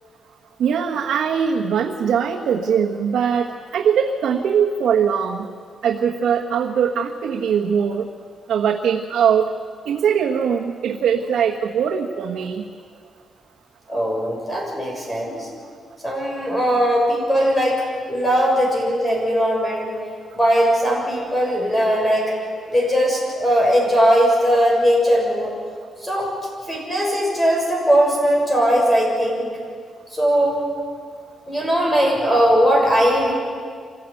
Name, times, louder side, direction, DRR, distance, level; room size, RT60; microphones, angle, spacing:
voice 1, 0.6-5.5 5.8-8.1 8.5-9.5 9.8-12.6, right 7 dB, 80° right, 0 dB, 1.4 m, -21 dB
voice 2, 13.9-15.5 16.0-17.8 18.1-19.9 20.3-22.3 22.7-25.5 26.0-26.3 26.7-29.5 30.1-30.6 31.5-33.3, equal, 15° left, -2 dB, 7.0 m, -19 dB
26.0 x 16.0 x 9.3 m, 2.1 s
wide cardioid pair, 155°, 0 cm